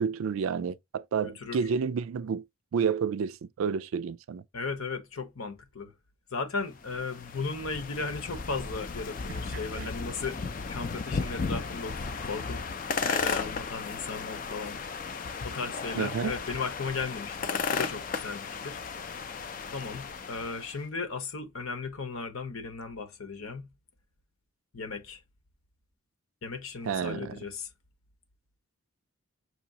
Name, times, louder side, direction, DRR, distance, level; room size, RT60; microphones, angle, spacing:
voice 1, 0.0-2.4 2.7-4.4 9.8-9.9 16.0-16.3 26.9-27.3, right 6 dB, 70° right, 0.3 m, -30 dB
voice 2, 1.2-1.6 4.5-5.9 6.3-10.4 10.7-14.8 15.4-18.8 19.7-23.7 24.7-25.2 26.4-27.7, left 4 dB, 80° left, 1.0 m, -36 dB
sound 1, 6.7-20.8, left 5 dB, 40° left, 0.4 m, -35 dB
6.0 x 2.9 x 2.8 m
head